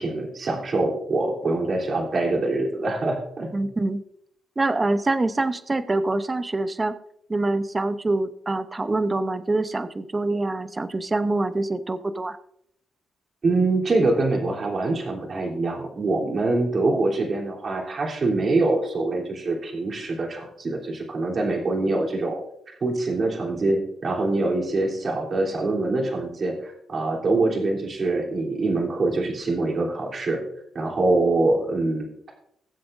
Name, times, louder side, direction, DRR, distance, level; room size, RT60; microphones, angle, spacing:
voice 1, 0.0-3.5 13.4-22.4 22.8-30.4 30.7-32.3, right 2 dB, 45° right, -1 dB, 3.3 m, -24 dB
voice 2, 3.5-4.0 4.6-6.9 7.3-12.4, right 2 dB, 20° right, 11 dB, 0.8 m, -25 dB
21.0 x 7.7 x 2.6 m, 0.72 s
cardioid pair, 105°, 0 cm